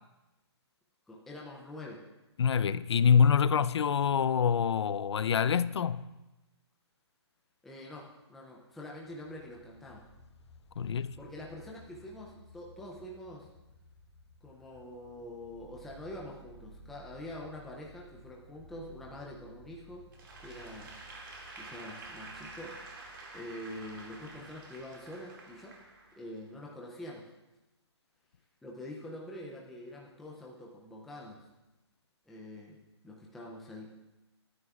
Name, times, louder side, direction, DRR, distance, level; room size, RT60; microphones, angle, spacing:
voice 1, 1.1-2.0 7.6-10.1 10.9-13.5 14.4-20.0 20.4-21.1 21.6-22.7 23.3-25.8 26.2-27.3 28.6-31.5 32.3-32.8 33.0-33.9, left 1 dB, ahead, 0.4 m, -45 dB
voice 2, 2.4-6.1 10.8-11.2, left 7 dB, 70° left, 0.4 m, -26 dB
sound 1, 9.0-26.3, right 1 dB, 20° left, 2.0 m, -57 dB
Applause / Crowd, 20.1-26.5, right 3 dB, 50° right, 2.1 m, -49 dB
19.5 x 9.8 x 2.3 m
hypercardioid pair, 165°, 14 cm